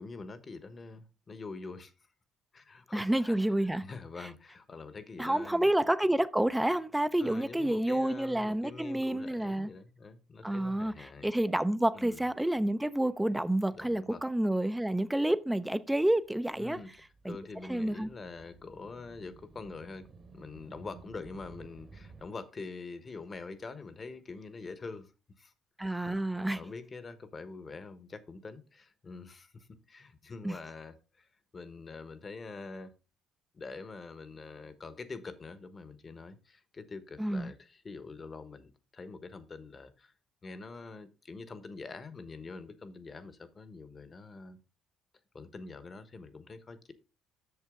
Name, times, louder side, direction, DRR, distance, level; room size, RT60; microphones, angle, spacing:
voice 1, 0.0-1.9 2.5-3.4 3.8-5.7 7.2-11.3 11.9-12.3 13.7-14.2 16.6-16.9 17.2-20.1 20.3-25.1 25.4-25.5 26.1-32.9 33.5-40.1 40.4-44.6 45.3-46.9, left 4 dB, 35° left, 1.2 m, -45 dB
voice 2, 2.9-3.9 5.2-9.7 10.4-16.8 17.2-17.4 17.7-18.1 25.8-26.6 30.4-30.6 37.2-37.5, right 1 dB, 5° right, 0.6 m, -29 dB
sound 1, 15.9-22.3, right 4 dB, 40° right, 1.3 m, -55 dB
8.1 x 6.5 x 3.7 m
cardioid pair, 85°, 0 cm